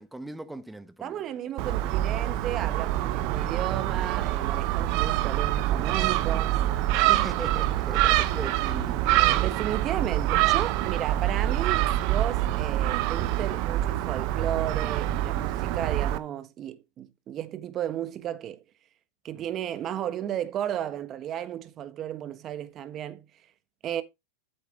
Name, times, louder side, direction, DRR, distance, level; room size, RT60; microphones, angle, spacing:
voice 1, 0.0-1.3 6.9-9.7, right 1 dB, 5° right, 1.2 m, -40 dB
voice 2, 1.0-6.6 9.4-18.6 19.2-23.2 23.8-24.0, right 11 dB, 35° right, 1.3 m, -34 dB
Gull seagull, 1.6-16.2, right 14 dB, 55° right, 0.9 m, -25 dB
8.6 x 7.8 x 3.2 m
hypercardioid pair, 115°, 0 cm